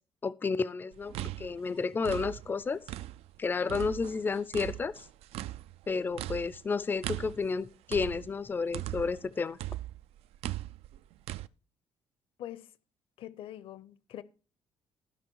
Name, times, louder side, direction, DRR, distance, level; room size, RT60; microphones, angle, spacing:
voice 1, 0.2-2.8 3.4-5.0 5.9-9.6, left 4 dB, 20° left, 0.4 m, -31 dB
sound 1, 0.9-3.4 3.7-9.3 9.6-11.5, right 15 dB, 80° right, 0.4 m, -39 dB
voice 2, 12.4-12.7 13.2-14.2, left 12 dB, 65° left, 0.8 m, -43 dB
14.0 x 5.6 x 4.6 m
cardioid pair, 150°, 10 cm